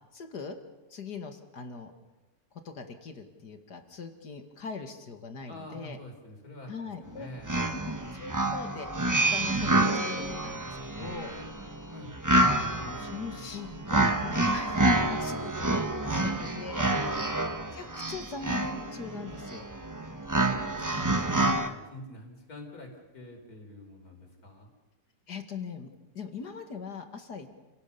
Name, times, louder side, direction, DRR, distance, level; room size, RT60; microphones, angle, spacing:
voice 1, 0.1-0.6 0.9-1.9 2.6-6.0 6.7-7.3 8.1-8.9 9.1-9.7 10.1-11.3 12.8-16.8 17.7-19.7 25.3-25.9 26.1-27.5, left 4 dB, 80° left, 6 dB, 2.6 m, -41 dB
voice 2, 5.5-7.9 11.9-12.2 16.0-17.2 20.9-24.7, left 1 dB, 65° left, 3 dB, 4.7 m, -46 dB
sound 1, 7.1-7.2 7.4-21.7, right 2 dB, 15° right, 1.0 m, -28 dB
30.0 x 17.5 x 7.0 m, 1.1 s
omnidirectional pair, 1.7 m